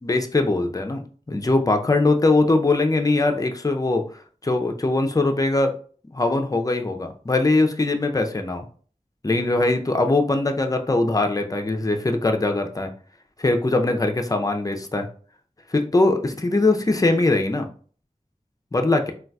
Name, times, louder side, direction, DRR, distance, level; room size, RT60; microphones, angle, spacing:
voice 1, 0.0-1.0 1.3-4.0 4.4-5.7 6.1-8.7 9.2-12.9 13.4-15.1 15.7-17.7 18.7-19.1, left 2 dB, 25° left, 5 dB, 0.4 m, -21 dB
3.9 x 2.3 x 2.2 m, 0.43 s
wide cardioid pair, 45°, 14 cm